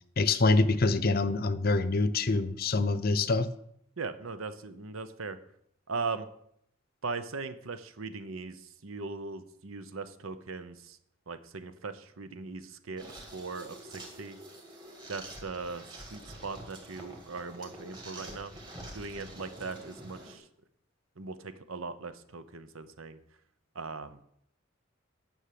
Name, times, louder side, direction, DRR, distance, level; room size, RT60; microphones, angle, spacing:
voice 1, 0.2-3.5, left 3 dB, 45° left, 14 dB, 0.6 m, -25 dB
voice 2, 4.0-5.4 5.9-6.3 7.0-11.0 11.3-14.4 15.1-18.5 18.9-20.5 21.2-23.2 23.7-24.2, right 4 dB, 80° right, 12 dB, 0.9 m, -39 dB
sound 1, 13.0-20.4, right 1 dB, 20° right, 2.1 m, -47 dB
10.0 x 6.4 x 7.6 m, 0.71 s
head